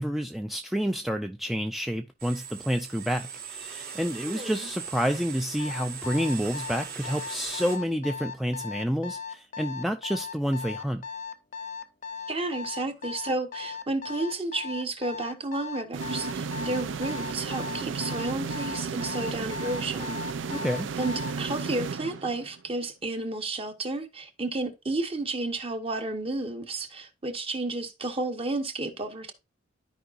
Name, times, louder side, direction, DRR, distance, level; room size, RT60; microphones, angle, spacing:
voice 1, 0.0-11.0 20.5-20.9, equal, ahead, 0.3 m, -29 dB
sound 1, 2.2-7.8, right 6 dB, 55° right, 1.6 m, -40 dB
voice 2, 4.2-4.7 12.3-20.2 21.0-29.3, right 2 dB, 30° right, 1.0 m, -32 dB
Alarm, 5.6-21.4, left 6 dB, 40° left, 0.6 m, -37 dB
sound 2, 15.9-22.7, right 5 dB, 85° right, 0.5 m, -34 dB
13.0 x 4.8 x 2.5 m
head